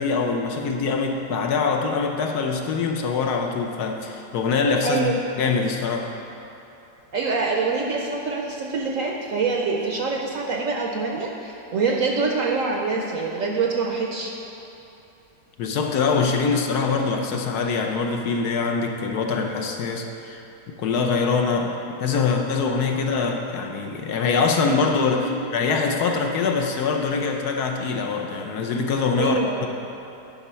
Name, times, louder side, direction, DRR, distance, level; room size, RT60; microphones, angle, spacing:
voice 1, 0.0-6.1 15.6-20.4 20.8-29.7, left 4 dB, 70° left, 3 dB, 1.1 m, -24 dB
voice 2, 4.8-5.2 7.1-14.3 25.1-25.4 29.2-29.7, right 4 dB, 60° right, 0 dB, 0.9 m, -25 dB
10.0 x 5.3 x 5.5 m, 2.9 s
omnidirectional pair, 1.9 m